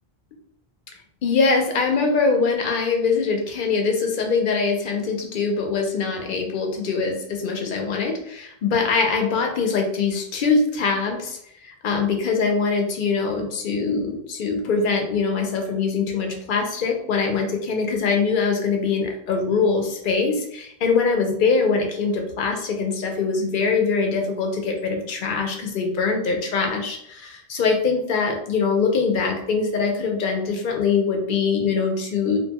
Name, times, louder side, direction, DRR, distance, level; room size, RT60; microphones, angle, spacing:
voice 1, 1.2-32.4, left 4 dB, 60° left, 3 dB, 0.7 m, -23 dB
2.5 x 2.2 x 2.8 m, 0.73 s
omnidirectional pair, 1.0 m